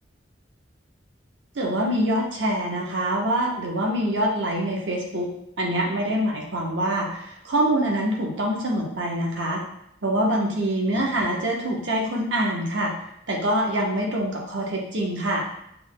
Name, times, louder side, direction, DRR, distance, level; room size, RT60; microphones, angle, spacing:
voice 1, 1.5-5.3 5.6-9.6 10.0-12.9 13.3-15.4, right 1 dB, 90° right, -1 dB, 0.9 m, -25 dB
5.6 x 2.2 x 3.8 m, 0.77 s
head